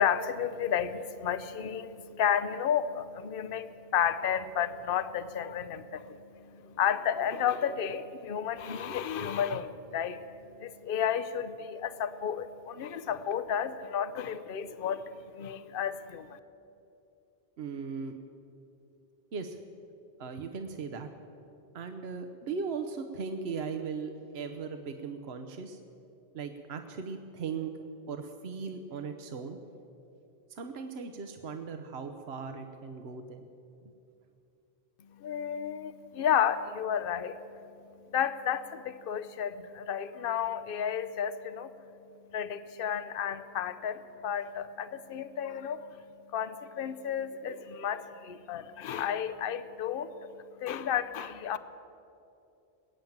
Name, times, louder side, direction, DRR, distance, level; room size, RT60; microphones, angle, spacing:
voice 1, 0.0-16.4 35.1-37.4 38.1-41.7 42.3-46.0 46.3-51.6, left 8 dB, 65° left, 13 dB, 0.9 m, -32 dB
voice 2, 17.6-18.1 19.3-19.6 20.2-21.1 21.7-25.8 26.3-27.7 28.1-29.6 30.5-33.4, right 5 dB, 80° right, 6 dB, 1.1 m, -38 dB
21.0 x 9.3 x 7.3 m, 2.8 s
omnidirectional pair, 1.1 m